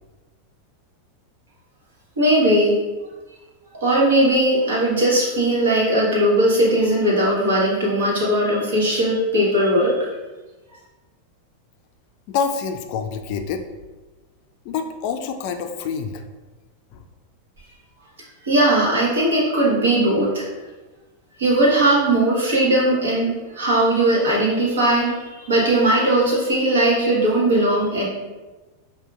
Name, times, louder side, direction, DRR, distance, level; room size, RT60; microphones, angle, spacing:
voice 1, 2.2-2.8 3.8-10.0 18.4-20.4 21.4-28.1, right 1 dB, 70° right, -5 dB, 1.2 m, -18 dB
voice 2, 12.3-13.6 14.7-16.2 16.9-17.0, left 6 dB, 50° left, 6 dB, 0.4 m, -26 dB
5.6 x 2.2 x 2.3 m, 1.2 s
figure-of-eight pair, 90°, 0 cm